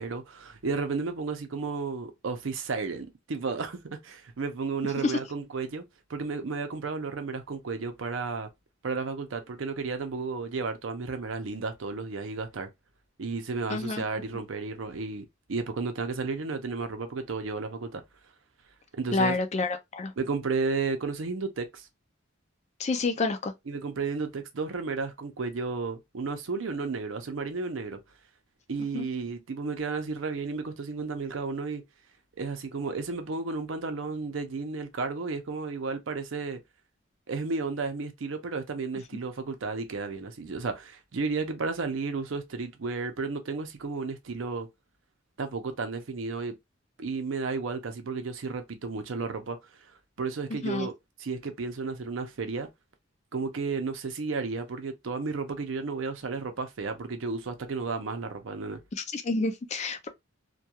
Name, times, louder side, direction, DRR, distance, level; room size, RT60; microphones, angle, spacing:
voice 1, 0.0-5.8 6.1-8.5 8.8-12.7 13.2-18.0 18.9-19.4 20.2-21.9 23.7-28.0 28.7-31.8 32.4-36.6 37.3-44.7 45.4-46.6 47.0-49.6 50.2-50.9 51.2-52.7 53.3-58.8, right 4 dB, 75° right, 0.5 m, -33 dB
voice 2, 13.7-14.0 19.1-20.1 22.8-23.5 28.9-29.1 50.6-50.9 59.1-60.1, left 3 dB, 35° left, 0.4 m, -28 dB
2.3 x 2.2 x 2.8 m
head